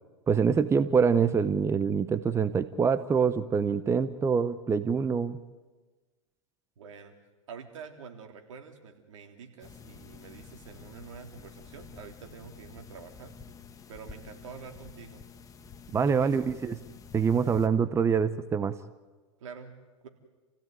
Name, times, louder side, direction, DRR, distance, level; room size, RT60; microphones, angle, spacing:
voice 1, 0.3-5.4 15.9-16.7 17.1-18.7, right 6 dB, 15° right, 14 dB, 0.8 m, -25 dB
voice 2, 6.8-7.1 7.5-13.3 13.9-15.2 15.9-16.5 19.4-19.7 20.0-20.1, right 6 dB, 75° right, 5 dB, 3.5 m, -46 dB
sound 1, 9.6-17.7, left 6 dB, 20° left, 1.9 m, -49 dB
28.5 x 16.0 x 9.4 m, 1.3 s
hypercardioid pair, 115°, 16 cm